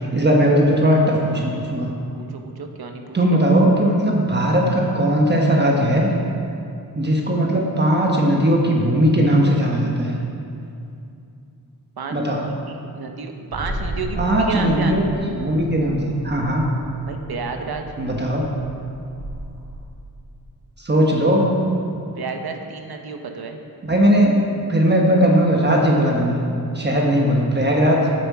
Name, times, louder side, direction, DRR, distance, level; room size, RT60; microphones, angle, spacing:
voice 1, 0.1-1.9 3.1-6.1 6.9-10.2 12.1-12.4 14.2-16.7 18.0-18.5 20.8-21.5 23.8-26.4 26.7-28.0, equal, 25° right, -1 dB, 1.1 m, -18 dB
voice 2, 2.1-3.0 3.3-3.4 12.0-15.1 17.0-17.8 22.2-23.6, right 5 dB, 75° right, 4 dB, 1.1 m, -31 dB
sound 1, 13.5-19.8, right 1 dB, 45° right, 3.1 m, -34 dB
14.0 x 7.6 x 4.8 m, 2.5 s
wide cardioid pair, 170°, 38 cm